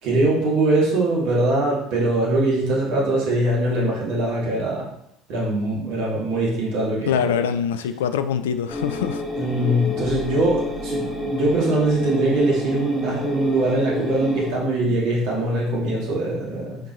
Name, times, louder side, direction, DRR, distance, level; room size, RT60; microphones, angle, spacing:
voice 1, 0.0-4.9 5.3-7.3 9.3-16.8, right 2 dB, 65° right, -4 dB, 2.4 m, -22 dB
voice 2, 7.1-9.2, left 8 dB, 75° left, 10 dB, 0.5 m, -24 dB
sound 1, 8.7-14.5, left 2 dB, 10° right, 2.7 m, -29 dB
9.3 x 5.4 x 3.1 m, 0.75 s
figure-of-eight pair, 60°, 0 cm